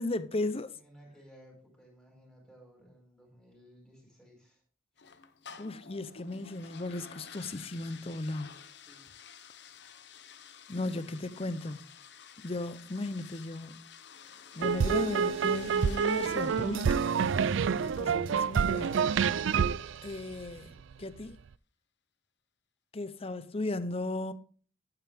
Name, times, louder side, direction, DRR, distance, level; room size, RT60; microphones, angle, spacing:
voice 1, 0.0-0.7 5.6-8.5 10.7-11.8 12.4-13.8 14.5-17.1 17.8-19.0 20.0-21.4 22.9-24.3, left 2 dB, 30° left, 0.7 m, -36 dB
voice 2, 0.7-4.6 8.8-9.1 11.0-11.3, equal, 5° left, 5.0 m, -57 dB
sound 1, 5.0-20.2, left 7 dB, 60° left, 0.9 m, -52 dB
sound 2, 14.6-20.9, right 6 dB, 70° right, 0.4 m, -28 dB
11.0 x 9.6 x 3.5 m
head